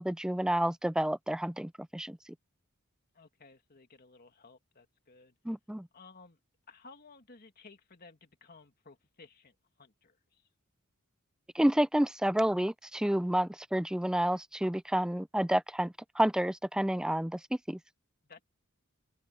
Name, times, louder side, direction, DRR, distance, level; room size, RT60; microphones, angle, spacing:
voice 1, 0.0-2.2 5.5-5.9 11.6-17.4 17.7-17.8, right 1 dB, 5° right, 0.4 m, -29 dB
voice 2, 3.1-5.4 5.9-6.4 6.7-10.5 18.2-18.4, left 4 dB, 45° left, 2.3 m, -56 dB
head